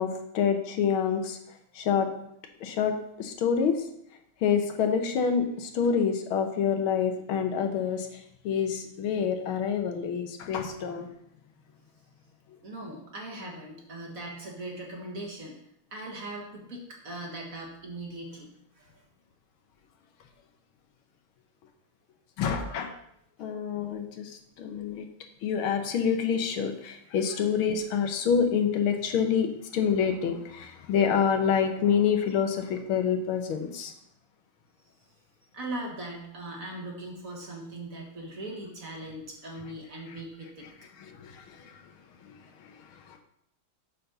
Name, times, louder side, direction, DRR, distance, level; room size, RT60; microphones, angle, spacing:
voice 1, 0.0-1.4 1.8-2.1 2.6-3.7 4.4-8.1 8.5-11.1 22.4-22.9 23.4-24.3 24.6-25.1 25.4-33.9 41.2-41.7 42.2-42.3, left 7 dB, 85° left, 5 dB, 1.8 m, -27 dB
voice 2, 12.6-15.6 15.9-19.0 35.5-40.7, right 1 dB, 45° right, -1 dB, 1.8 m, -40 dB
7.5 x 4.2 x 6.7 m, 0.74 s
omnidirectional pair, 2.2 m